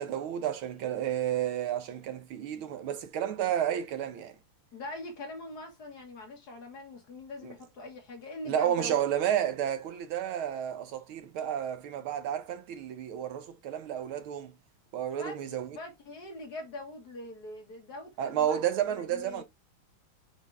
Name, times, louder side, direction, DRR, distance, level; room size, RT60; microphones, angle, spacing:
voice 1, 0.0-4.3 7.4-7.5 8.5-14.5 14.9-15.8 18.2-19.4, right 10 dB, 75° right, 1.7 m, -31 dB
voice 2, 4.7-9.0 15.2-19.4, left 2 dB, 50° left, 2.0 m, -43 dB
7.4 x 3.9 x 3.4 m
omnidirectional pair, 2.4 m